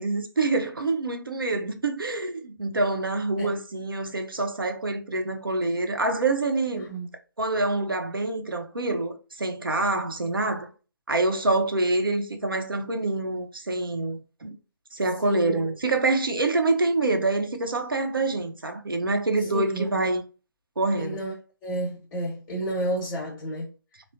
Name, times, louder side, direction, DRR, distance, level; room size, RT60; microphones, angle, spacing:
voice 1, 0.0-6.9 7.4-10.7 11.1-14.6 14.9-20.2 20.8-21.2, right 2 dB, 80° right, 0.7 m, -26 dB
voice 2, 6.7-7.1 15.2-15.6 19.4-20.2 20.9-21.3 21.6-23.7, equal, 20° left, 0.9 m, -31 dB
3.6 x 2.0 x 2.7 m
figure-of-eight pair, 140°, 11 cm